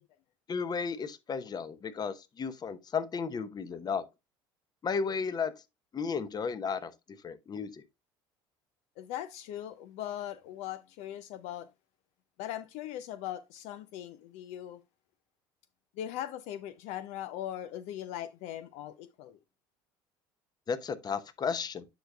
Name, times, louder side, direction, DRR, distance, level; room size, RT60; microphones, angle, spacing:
voice 1, 0.5-4.0 4.8-5.5 5.9-6.9 7.2-7.8 20.7-21.9, left 5 dB, 35° left, 0.8 m, -33 dB
voice 2, 9.0-11.7 12.4-14.8 16.0-19.4, left 11 dB, 70° left, 0.5 m, -40 dB
10.0 x 4.8 x 2.2 m
hypercardioid pair, 75°, 12 cm